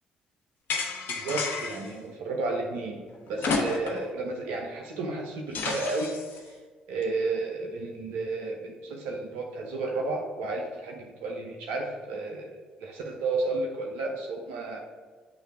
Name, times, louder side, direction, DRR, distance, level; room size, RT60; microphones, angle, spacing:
sound 1, 0.7-1.9 3.4-4.1 4.5-4.6 5.5-6.4, left 4 dB, 65° left, 0.9 m, -31 dB
voice 1, 1.1-3.0 3.3-6.1 6.4-6.6 6.9-12.5 12.8-14.8, right 3 dB, 75° right, 0 dB, 0.9 m, -32 dB
8.4 x 3.4 x 4.7 m, 1.5 s
hypercardioid pair, 50°, 4 cm